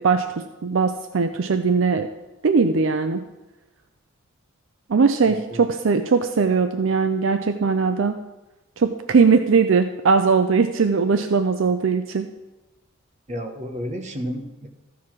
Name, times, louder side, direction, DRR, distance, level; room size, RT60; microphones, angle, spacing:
voice 1, 0.0-2.1 2.4-3.2 4.9-8.1 8.8-12.3, right 5 dB, 60° right, 8 dB, 0.5 m, -20 dB
voice 2, 5.3-5.7 13.3-14.7, equal, 35° right, 4 dB, 1.1 m, -32 dB
14.0 x 4.8 x 5.9 m, 1.1 s
head